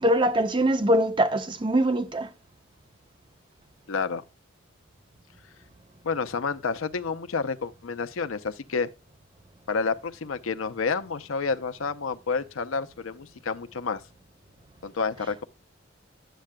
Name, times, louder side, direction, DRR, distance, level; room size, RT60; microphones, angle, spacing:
voice 1, 0.0-2.3, right 1 dB, 25° right, 0.5 m, -23 dB
voice 2, 3.9-4.2 6.0-8.9 9.7-14.0 14.8-15.4, left 5 dB, 90° left, 0.6 m, -29 dB
10.0 x 7.5 x 2.2 m
head